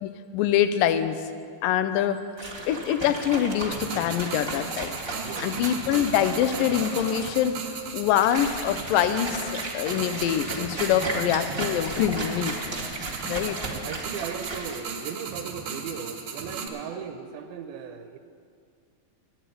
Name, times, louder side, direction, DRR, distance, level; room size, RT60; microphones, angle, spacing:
voice 1, 0.0-1.2 1.6-2.2 2.7-4.9 5.4-7.6 7.9-12.6 13.2-13.6, left 10 dB, 80° left, 11 dB, 2.2 m, -24 dB
sound 1, 2.4-14.8, right 2 dB, 30° right, 0.5 m, -35 dB
sound 2, 3.7-16.7, right 6 dB, 65° right, 2.4 m, -37 dB
voice 2, 5.2-5.6 13.8-18.2, right 7 dB, 85° right, 6 dB, 2.5 m, -37 dB
sound 3, 8.4-10.3 11.8-13.6, left 1 dB, 30° left, 2.0 m, -43 dB
10.0 x 9.2 x 9.1 m, 2.2 s
omnidirectional pair, 4.2 m